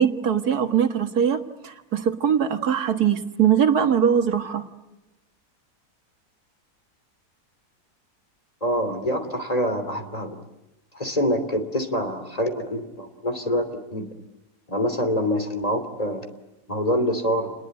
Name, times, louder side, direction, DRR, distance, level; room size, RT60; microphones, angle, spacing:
voice 1, 0.0-1.4 1.6-4.6, right 8 dB, 75° right, 7 dB, 2.1 m, -21 dB
voice 2, 8.6-10.4 10.9-14.1 14.7-16.2 16.7-17.5, equal, 25° left, 7 dB, 3.2 m, -25 dB
29.5 x 21.0 x 9.5 m, 0.99 s
omnidirectional pair, 1.7 m